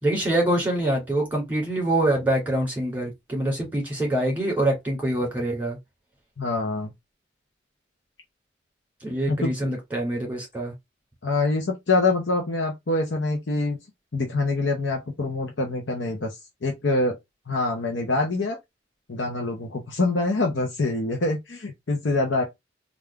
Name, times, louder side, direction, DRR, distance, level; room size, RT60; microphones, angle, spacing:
voice 1, 0.0-5.8 9.0-10.7, right 1 dB, 10° right, 2.0 m, -25 dB
voice 2, 6.4-6.9 9.3-9.5 11.2-13.8 14.1-17.2 17.5-18.6 19.1-22.4, left 2 dB, 70° left, 0.8 m, -25 dB
3.6 x 2.5 x 3.3 m
head